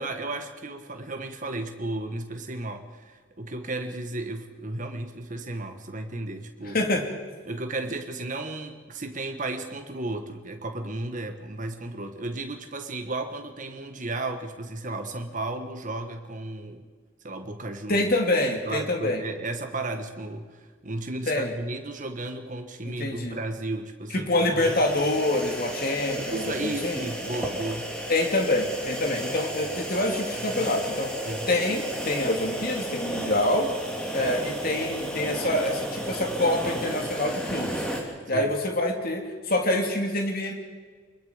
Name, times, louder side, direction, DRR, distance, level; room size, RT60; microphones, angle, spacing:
voice 1, 0.0-6.8 7.5-16.9 17.2-18.1 18.7-24.3 26.2-27.9 31.2-31.5 38.3-38.5, right 2 dB, 40° right, 6 dB, 1.6 m, -34 dB
voice 2, 6.6-7.0 17.9-19.2 21.3-21.5 22.8-23.4 24.1-27.0 28.1-31.1 31.5-33.7 34.1-37.8 38.3-40.5, left 1 dB, 45° left, 3 dB, 2.6 m, -26 dB
sound 1, 24.6-38.0, equal, 5° left, 2.7 m, -33 dB
24.5 x 21.5 x 5.2 m, 1.5 s
head